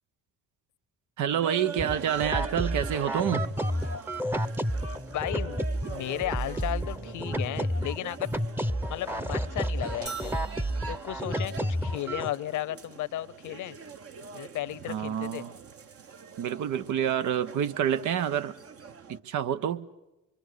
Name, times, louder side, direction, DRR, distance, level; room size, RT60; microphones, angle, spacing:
voice 1, 1.2-3.5 14.9-15.5 16.4-18.5 19.1-19.9, right 9 dB, 75° right, 1.0 m, -28 dB
sound 1, 1.3-19.2, right 5 dB, 50° right, 1.2 m, -44 dB
sound 2, 1.8-12.3, right 1 dB, 5° right, 0.9 m, -31 dB
voice 2, 5.1-5.6 5.9-8.3 8.9-10.5 10.9-13.8 14.3-15.5, left 13 dB, 75° left, 0.9 m, -34 dB
sound 3, 10.1-12.0, right 2 dB, 35° right, 1.5 m, -47 dB
25.0 x 23.0 x 8.1 m
cardioid pair, 90°, 30 cm